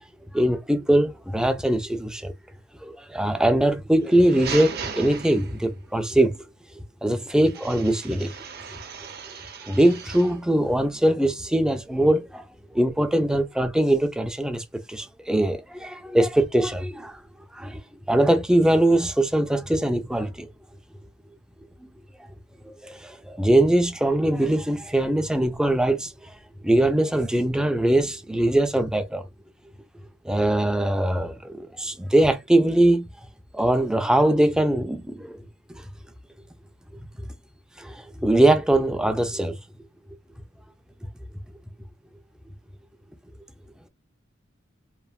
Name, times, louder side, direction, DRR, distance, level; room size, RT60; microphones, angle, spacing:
voice 1, 0.3-2.3 2.8-6.4 6.8-8.3 9.6-12.4 12.7-17.2 17.5-17.8 18.1-20.5 22.6-26.3 26.6-29.3 30.2-33.1 33.5-35.4 35.7-35.8 37.8-39.6, right 1 dB, 5° right, 0.3 m, -22 dB
sound 1, 4.0-5.9 7.5-10.4, right 6 dB, 50° right, 0.6 m, -37 dB
3.1 x 2.1 x 2.3 m
head